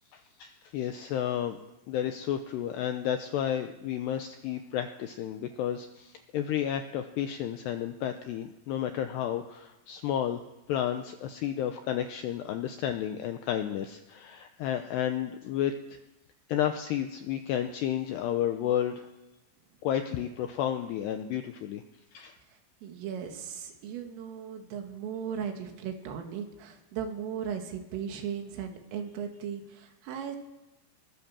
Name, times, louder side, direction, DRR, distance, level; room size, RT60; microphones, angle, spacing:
voice 1, 0.1-1.6 1.9-10.4 10.7-15.7 16.5-19.1 19.8-21.8 22.1-22.3, left 10 dB, 80° left, 7 dB, 2.5 m, -31 dB
voice 2, 22.8-30.4, right 8 dB, 75° right, 4 dB, 4.7 m, -37 dB
21.0 x 19.5 x 7.4 m, 0.98 s
omnidirectional pair, 5.9 m